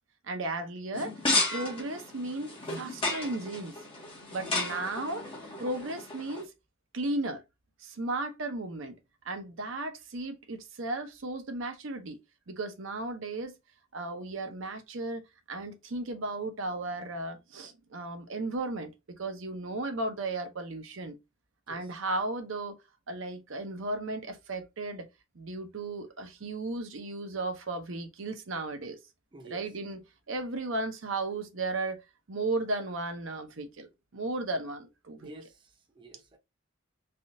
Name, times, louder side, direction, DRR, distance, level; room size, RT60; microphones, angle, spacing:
voice 1, 0.2-3.7 4.3-5.3 5.6-6.5 6.9-7.4 7.8-9.0 9.3-12.2 12.5-13.6 13.9-15.2 15.5-18.9 19.2-21.2 21.7-22.8 23.1-25.0 25.3-29.0 29.4-30.0 30.3-32.0 32.3-35.3, right 2 dB, 70° right, 0.7 m, -35 dB
sound 1, 0.9-6.4, left 2 dB, 25° left, 1.0 m, -33 dB
voice 2, 29.3-29.7 35.2-36.4, right 2 dB, 25° right, 0.5 m, -50 dB
3.5 x 2.4 x 2.6 m
head